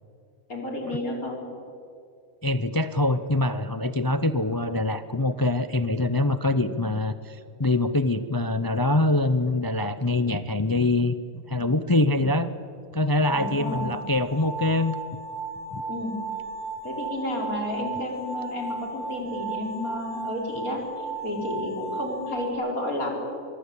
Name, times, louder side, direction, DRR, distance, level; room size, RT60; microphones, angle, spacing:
voice 1, 0.5-1.4 6.5-6.8 12.0-12.3 13.3-14.0 15.9-16.2 16.8-23.2, left 1 dB, 70° left, 0 dB, 5.3 m, -31 dB
voice 2, 2.4-11.2 11.5-12.5 12.9-14.9 15.7-15.8, left 2 dB, 20° left, 11 dB, 0.6 m, -24 dB
sound 1, 13.2-22.5, right 3 dB, 90° left, 7.9 m, -35 dB
24.5 x 23.0 x 8.5 m, 2.4 s
omnidirectional pair, 1.6 m